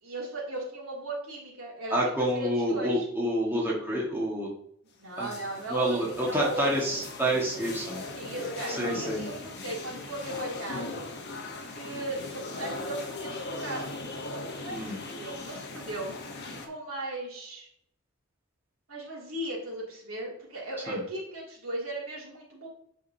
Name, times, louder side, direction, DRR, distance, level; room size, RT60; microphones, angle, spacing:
voice 1, 0.0-3.1 5.0-7.0 8.1-11.0 11.7-14.0 14.5-16.1 16.5-17.7 18.9-22.7, right 1 dB, 80° right, -3 dB, 2.6 m, -37 dB
voice 2, 1.9-4.5 5.2-5.3 5.7-8.0 8.8-9.3 14.7-15.0 20.9-21.0, right 1 dB, 10° right, -4 dB, 1.5 m, -28 dB
sound 1, 5.2-16.7, left 3 dB, 50° left, 1.1 m, -39 dB
8.4 x 5.2 x 2.7 m, 0.67 s
head